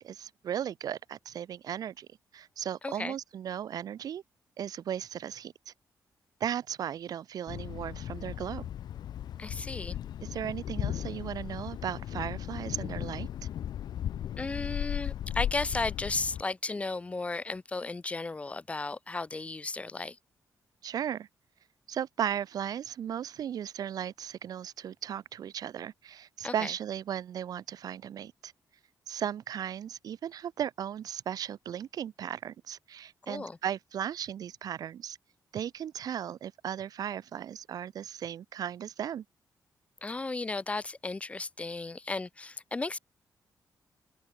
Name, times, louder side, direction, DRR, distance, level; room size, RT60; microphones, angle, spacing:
voice 1, 0.0-2.1 2.3-4.2 4.6-5.7 6.4-8.7 10.2-13.3 20.8-21.3 21.9-28.5 29.1-35.2 35.5-39.2, right 9 dB, 65° right, 1.1 m, -36 dB
voice 2, 2.8-3.1 9.4-10.0 14.4-20.2 26.4-26.7 33.3-33.6 40.0-43.0, left 3 dB, 20° left, 0.9 m, -34 dB
Thunder, 7.5-16.4, left 10 dB, 85° left, 2.4 m, -36 dB
open air
wide cardioid pair, 170°, 7 cm